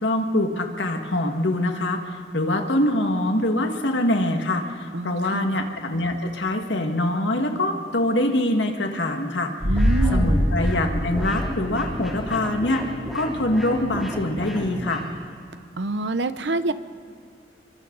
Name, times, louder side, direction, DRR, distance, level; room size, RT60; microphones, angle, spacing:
voice 1, 0.0-2.0 2.3-9.5 10.1-12.9 13.1-15.0, left 1 dB, 80° left, 4 dB, 2.0 m, -24 dB
voice 2, 4.9-5.6 9.6-10.4 15.8-16.7, right 2 dB, 75° right, 12 dB, 0.8 m, -26 dB
Low Movie Boom, 9.6-12.3 12.6-12.7, equal, 15° left, 7.4 m, -23 dB
sound 1, 9.7-15.0, equal, ahead, 3.7 m, -33 dB
28.0 x 24.5 x 4.0 m, 2.3 s
head